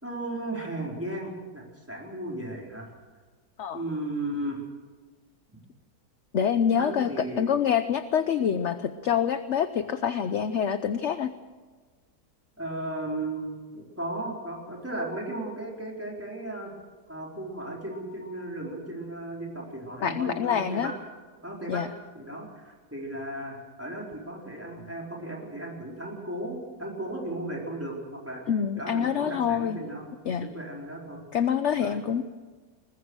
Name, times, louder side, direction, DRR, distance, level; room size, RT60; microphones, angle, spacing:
voice 1, 0.0-2.9 3.7-4.6 6.8-7.5 12.6-16.7 17.1-20.9 21.4-21.8 22.1-28.4 28.8-30.0 30.4-31.2 31.8-32.0, right 1 dB, 10° right, -2 dB, 4.6 m, -35 dB
voice 2, 6.3-11.3 20.0-20.9 21.7-21.9 28.5-29.8 30.3-30.5 31.3-32.2, left 8 dB, 55° left, 11 dB, 0.9 m, -26 dB
21.5 x 20.0 x 6.5 m, 1.4 s
omnidirectional pair, 1.7 m